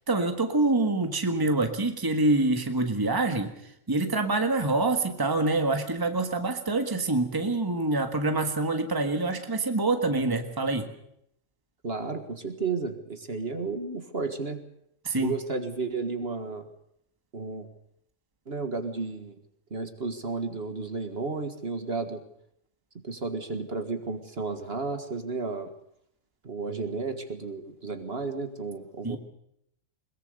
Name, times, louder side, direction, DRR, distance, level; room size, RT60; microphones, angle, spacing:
voice 1, 0.1-3.5 3.9-10.9 15.0-15.3 29.0-29.2, right 2 dB, 15° right, 6 dB, 1.6 m, -26 dB
voice 2, 11.8-14.6 15.2-16.7 17.3-17.7 18.5-19.4 19.7-22.2 23.0-25.7 26.4-29.2, right 4 dB, 50° right, 8 dB, 2.0 m, -33 dB
21.5 x 21.0 x 6.7 m, 0.73 s
omnidirectional pair, 1.4 m